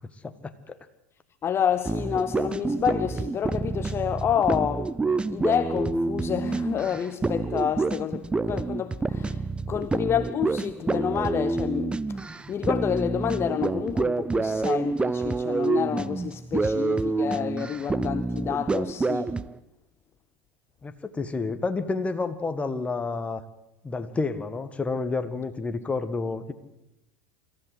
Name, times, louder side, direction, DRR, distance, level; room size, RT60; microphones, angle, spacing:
voice 1, 0.2-0.8 16.5-16.7 20.8-23.4 23.8-26.5, left 3 dB, 15° left, 1.8 m, -30 dB
voice 2, 1.4-4.9 5.3-19.4, left 8 dB, 30° left, 0.9 m, -28 dB
sound 1, 1.8-19.6, right 3 dB, 15° right, 0.7 m, -28 dB
26.0 x 14.5 x 8.0 m
hypercardioid pair, 90°, 8 cm